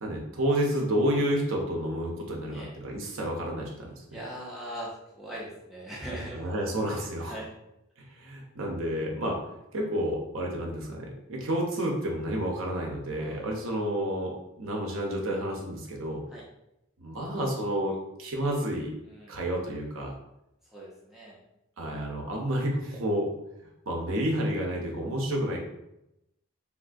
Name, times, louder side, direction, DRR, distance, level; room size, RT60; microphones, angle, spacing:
voice 1, 0.0-4.2 6.3-7.4 8.1-9.4 9.7-16.2 17.0-18.9 19.3-20.1 21.8-23.3 23.9-25.6, equal, 60° right, 0 dB, 0.6 m, -30 dB
voice 2, 4.1-6.5 6.9-7.5 13.2-13.6 16.3-16.4 19.0-19.3 20.6-21.4, right 1 dB, ahead, -6 dB, 0.4 m, -41 dB
3.5 x 2.3 x 2.5 m, 0.87 s
head